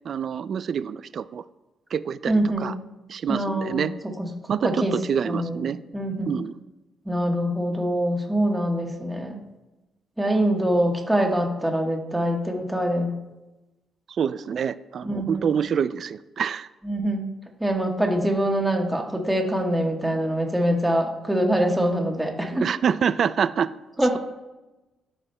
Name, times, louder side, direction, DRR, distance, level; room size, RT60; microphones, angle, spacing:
voice 1, 0.1-1.4 1.9-2.7 3.1-3.9 4.5-5.8 6.3-6.5 14.2-16.7 22.5-23.7, right 7 dB, 55° right, 15 dB, 0.3 m, -26 dB
voice 2, 2.3-2.7 3.3-3.9 4.2-4.3 4.6-4.9 5.2-5.6 5.9-6.3 7.0-9.4 10.2-13.1 15.0-15.5 16.8-17.3 17.6-22.6 24.0-24.2, right 1 dB, 10° right, 1 dB, 1.2 m, -24 dB
13.0 x 4.9 x 2.2 m, 1.0 s
cardioid pair, 90°, 0 cm